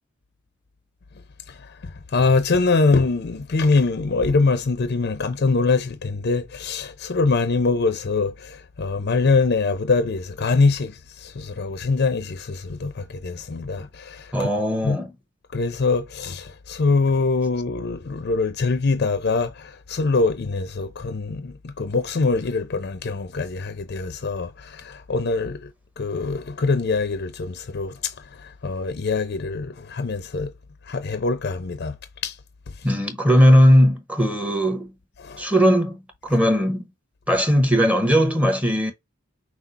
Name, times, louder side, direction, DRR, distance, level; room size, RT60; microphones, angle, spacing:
voice 1, 1.5-14.5 14.8-15.0 15.5-25.7 26.0-30.5 30.9-32.0 32.2-32.4 35.2-35.4, left 3 dB, 50° left, 0.5 m, -23 dB
voice 2, 14.3-15.1 32.8-34.9 35.4-36.9 37.3-38.9, equal, 5° right, 0.8 m, -18 dB
5.9 x 2.0 x 4.0 m
head